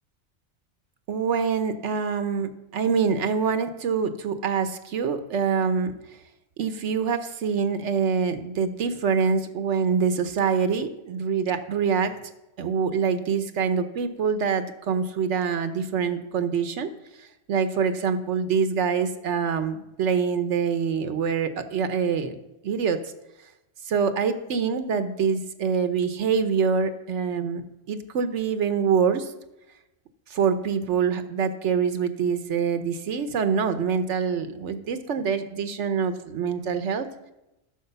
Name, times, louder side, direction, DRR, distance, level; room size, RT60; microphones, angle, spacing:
voice 1, 1.1-5.9 6.6-12.2 12.6-16.9 17.5-22.4 22.6-23.0 23.9-29.3 30.3-37.1, right 6 dB, 80° right, 9 dB, 1.1 m, -25 dB
11.5 x 6.2 x 6.8 m, 0.93 s
omnidirectional pair, 1.2 m